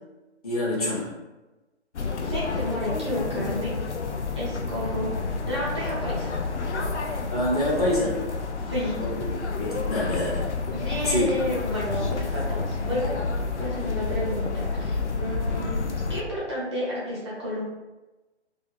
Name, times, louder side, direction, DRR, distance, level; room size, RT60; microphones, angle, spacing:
voice 1, 0.4-1.1 7.3-8.2 9.0-9.1 9.6-10.4 11.1-11.3, left 1 dB, 35° left, -6 dB, 0.8 m, -26 dB
sound 1, 1.9-16.2, left 4 dB, 80° left, 0.5 m, -29 dB
voice 2, 2.2-3.7 4.3-5.1 5.5-6.4 8.6-8.9 10.7-13.2 13.6-17.6, equal, 25° right, -9 dB, 0.5 m, -31 dB
2.5 x 2.2 x 2.9 m, 1.1 s
figure-of-eight pair, 140°, 34 cm